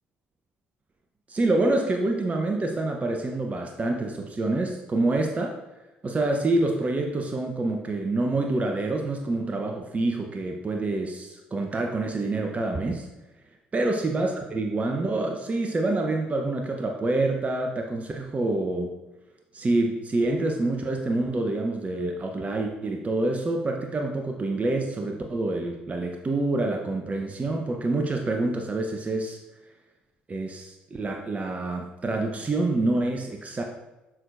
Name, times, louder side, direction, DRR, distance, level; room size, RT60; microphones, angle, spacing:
voice 1, 1.3-5.5 6.0-13.1 13.7-19.0 19.5-29.4 30.3-33.6, right 2 dB, 30° right, 2 dB, 0.8 m, -27 dB
7.7 x 6.1 x 2.6 m, 1.0 s
figure-of-eight pair, 50°, 5 cm